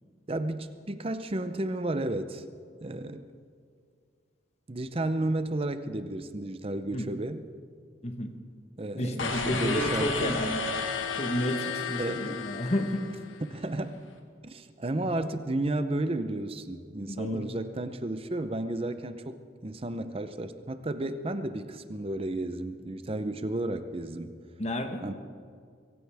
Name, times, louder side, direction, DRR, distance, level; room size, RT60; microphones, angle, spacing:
voice 1, 0.3-2.4 2.8-3.3 4.7-7.4 8.8-10.4 12.0-12.4 13.4-14.0 14.4-24.4 25.0-25.1, right 1 dB, 30° right, 10 dB, 0.7 m, -32 dB
voice 2, 8.0-8.3 9.0-10.6 11.1-13.1 15.0-15.1 17.1-17.5 24.6-25.1, equal, 35° left, 6 dB, 1.2 m, -31 dB
sound 1, 9.2-13.4, left 4 dB, 85° left, 1.5 m, -33 dB
23.5 x 16.0 x 3.5 m, 2.2 s
head